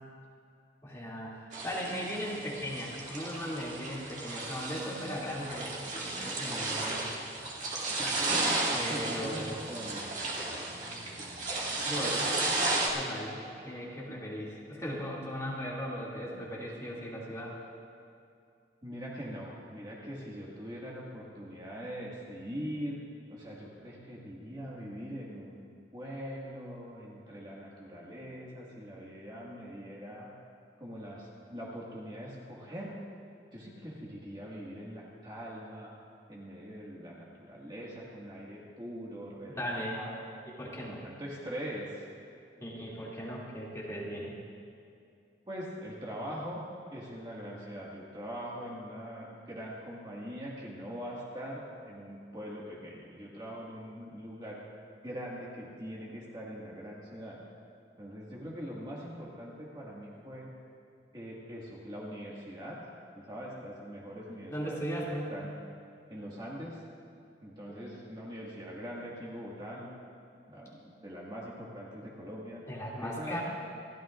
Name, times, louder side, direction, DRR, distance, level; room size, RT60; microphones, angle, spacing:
voice 1, 0.8-7.0 8.7-9.6 11.8-12.3 12.9-17.7 39.5-40.0 40.6-41.0 42.6-44.3 64.5-65.4 67.7-67.8 72.7-73.4, equal, 15° left, -6 dB, 2.6 m, -38 dB
sound 1, 1.5-12.9, right 2 dB, 40° right, 2.1 m, -34 dB
voice 2, 8.9-10.1 18.8-23.0 23.3-25.6 25.9-30.3 30.8-33.0 33.5-35.9 36.3-40.4 40.8-42.1 45.5-46.6 46.9-54.7 55.0-57.4 58.0-60.5 61.1-62.8 63.2-65.5 66.1-66.8 67.4-69.9 70.5-72.6 73.0-73.4, equal, 25° right, -5 dB, 1.9 m, -42 dB
28.0 x 13.0 x 2.5 m, 2.5 s
head